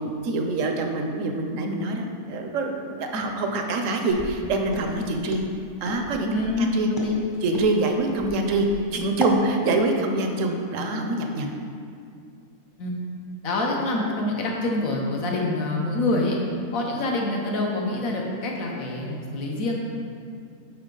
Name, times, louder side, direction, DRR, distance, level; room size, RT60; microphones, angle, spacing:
voice 1, 0.0-5.4 5.8-6.3 6.7-6.9 7.4-11.5, right 2 dB, 65° right, 3 dB, 1.0 m, -25 dB
Walk footsteps, 4.1-9.4, equal, 20° left, 0.7 m, -35 dB
voice 2, 6.3-7.2 12.8-13.0 13.4-16.4 16.7-19.7, left 2 dB, 65° left, -1 dB, 1.4 m, -26 dB
8.0 x 5.6 x 3.9 m, 2.3 s
omnidirectional pair, 1.6 m